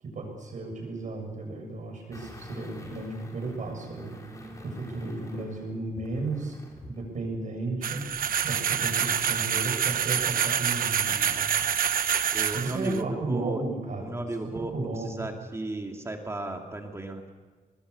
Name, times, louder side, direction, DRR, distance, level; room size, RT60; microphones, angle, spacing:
voice 1, 0.0-4.2 4.6-6.5 6.8-8.0 8.4-11.6 12.5-14.2 14.4-15.3, right 2 dB, 60° right, 2 dB, 7.1 m, -34 dB
sound 1, 2.1-7.0 7.3-7.4, left 1 dB, 20° left, 3.5 m, -46 dB
sound 2, 7.8-13.0, right 8 dB, 85° right, 1.0 m, -27 dB
voice 2, 12.3-13.6 14.0-17.3, right 2 dB, 20° right, 3 dB, 2.4 m, -35 dB
25.5 x 21.0 x 7.0 m, 1.5 s
wide cardioid pair, 160°, 14 cm